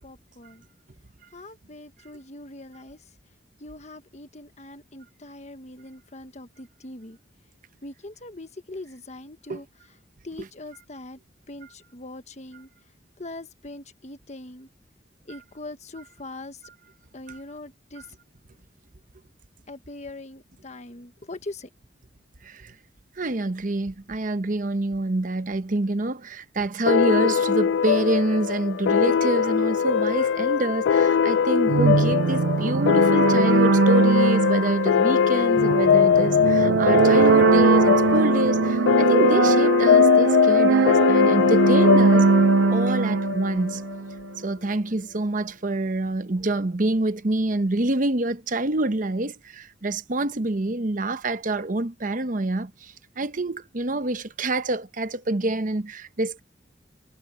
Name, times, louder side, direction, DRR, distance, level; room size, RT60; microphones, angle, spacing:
voice 1, 0.0-0.6 1.3-3.0 3.6-7.2 7.8-9.7 10.2-11.2 11.5-12.7 13.2-14.7 15.3-16.6 17.1-18.1 19.7-21.7, left 2 dB, 40° left, 1.4 m, -41 dB
voice 2, 22.4-22.7 23.2-42.3 42.7-43.8 44.4-56.4, right 2 dB, 45° right, 0.9 m, -26 dB
sound 1, 26.9-44.0, left 7 dB, 85° left, 0.3 m, -21 dB
sound 2, 31.7-44.2, right 5 dB, 80° right, 0.4 m, -21 dB
head